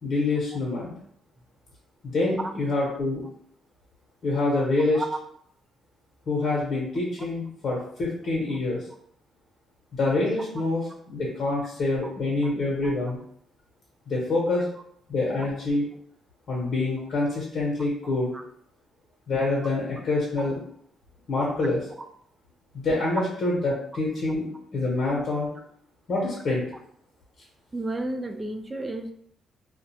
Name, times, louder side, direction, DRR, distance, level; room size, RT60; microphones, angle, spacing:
voice 1, 0.0-0.9 2.0-3.2 4.2-5.0 6.3-8.8 9.9-13.2 14.1-14.7 15.1-15.8 16.5-18.3 19.3-20.6 21.3-21.8 22.7-24.5 24.7-25.5 26.1-26.7, left 2 dB, 60° left, -4 dB, 0.8 m, -26 dB
voice 2, 27.7-29.1, right 2 dB, 25° right, 6 dB, 0.3 m, -32 dB
2.3 x 2.1 x 2.8 m, 0.66 s
cardioid pair, 90°, 0 cm